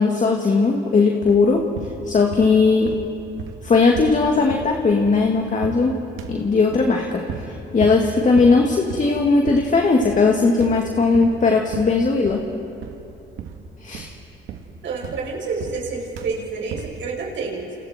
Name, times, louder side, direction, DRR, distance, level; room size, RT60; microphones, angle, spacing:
voice 1, 0.0-1.7 2.1-2.9 3.6-6.0 6.3-7.2 7.5-12.4 13.8-14.1, left 4 dB, 40° left, 1 dB, 2.3 m, -18 dB
sound 1, 1.2-1.5 1.7-2.6 2.8-5.3 5.6-5.9 6.2-7.0 7.3-7.5 7.8-8.1 8.4-8.6 8.9-9.2 9.5-9.8 10.0-10.3 10.6-11.4 11.7-12.5 12.8-13.1 13.4-13.7 13.9-15.9 16.1-16.4 16.7-17.0, right 7 dB, 90° right, 1.9 m, -35 dB
voice 2, 14.8-17.8, right 4 dB, 70° right, -3 dB, 6.8 m, -29 dB
29.0 x 28.5 x 4.5 m, 2.8 s
cardioid pair, 90°, 20 cm